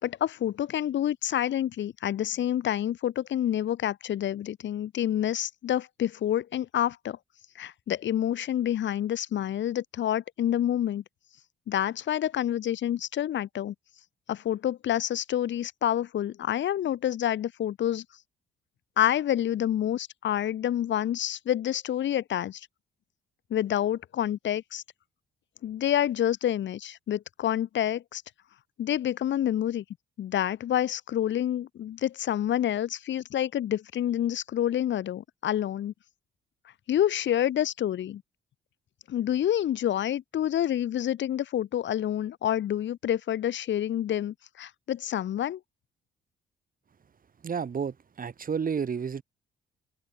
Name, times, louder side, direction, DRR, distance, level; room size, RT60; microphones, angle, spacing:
voice 1, 0.0-7.2 7.6-11.0 11.7-13.7 14.3-18.0 19.0-22.7 23.5-24.8 25.6-28.2 28.8-29.8 30.2-35.9 36.9-38.2 39.1-45.6, left 11 dB, 70° left, 2.2 m, -28 dB
voice 2, 47.4-49.2, right 6 dB, 45° right, 6.5 m, -31 dB
open air
cardioid pair, 90°, 20 cm